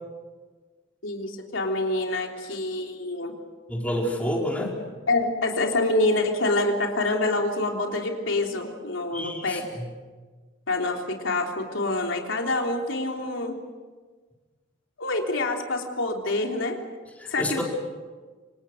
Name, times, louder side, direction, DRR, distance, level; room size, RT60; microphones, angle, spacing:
voice 1, 1.0-3.3 5.1-9.6 10.7-13.6 15.0-16.8 17.3-17.6, left 2 dB, 85° left, 1 dB, 3.5 m, -26 dB
voice 2, 3.7-4.7 9.1-9.6 17.2-17.6, equal, 10° left, -2 dB, 4.8 m, -28 dB
28.0 x 26.5 x 6.5 m, 1.4 s
head